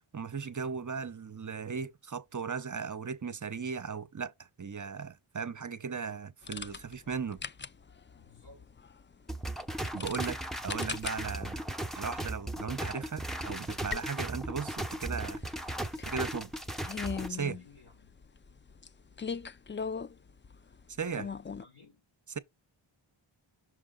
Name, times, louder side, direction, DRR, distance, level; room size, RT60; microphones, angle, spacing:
voice 1, 0.1-7.4 9.9-11.6 12.0-15.7 16.0-16.5 17.3-17.6 21.0-21.3, right 6 dB, 40° right, 0.6 m, -37 dB
sound 1, 6.4-21.6, left 5 dB, 25° left, 0.3 m, -42 dB
voice 2, 8.1-8.7 17.4-18.2 21.0-22.1, left 3 dB, 85° left, 4.3 m, -58 dB
sound 2, 9.3-17.3, right 1 dB, ahead, 0.8 m, -37 dB
6.3 x 4.4 x 3.8 m
wide cardioid pair, 40°, 50 cm